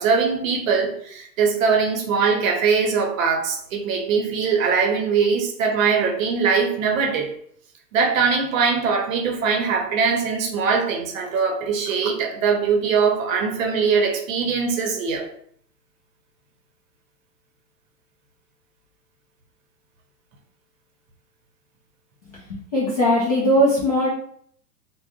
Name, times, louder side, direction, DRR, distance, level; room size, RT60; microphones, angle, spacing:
voice 1, 0.0-7.3 7.9-15.3, right 5 dB, 55° right, 3 dB, 0.7 m, -21 dB
voice 2, 22.3-24.1, equal, 25° left, -7 dB, 0.3 m, -20 dB
3.5 x 2.1 x 2.2 m, 0.63 s
hypercardioid pair, 115°, 50 cm